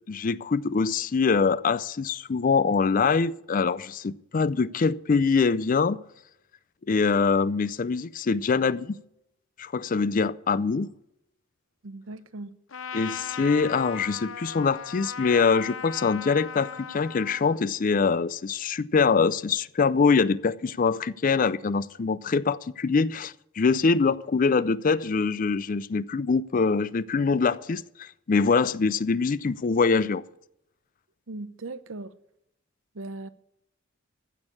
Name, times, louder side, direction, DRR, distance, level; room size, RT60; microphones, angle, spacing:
voice 1, 0.1-6.0 6.9-8.9 9.6-10.9 12.9-30.2, left 4 dB, 45° left, 0.4 m, -24 dB
voice 2, 11.8-12.5 31.3-32.1 32.9-33.3, right 2 dB, 85° right, 0.8 m, -38 dB
Trumpet, 12.7-17.6, left 7 dB, 85° left, 0.7 m, -38 dB
15.0 x 6.3 x 8.5 m
head